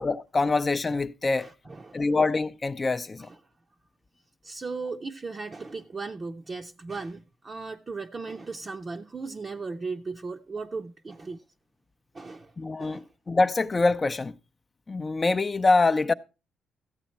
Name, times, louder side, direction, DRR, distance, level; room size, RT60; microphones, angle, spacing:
voice 1, 0.0-1.5 1.9-3.3 12.6-14.3 14.9-16.1, left 3 dB, 30° left, 0.6 m, -25 dB
voice 2, 1.4-2.1 3.2-3.4 4.4-11.4 12.1-13.1, right 4 dB, 30° right, 0.7 m, -37 dB
14.0 x 8.3 x 4.3 m
cardioid pair, 90°, 0 cm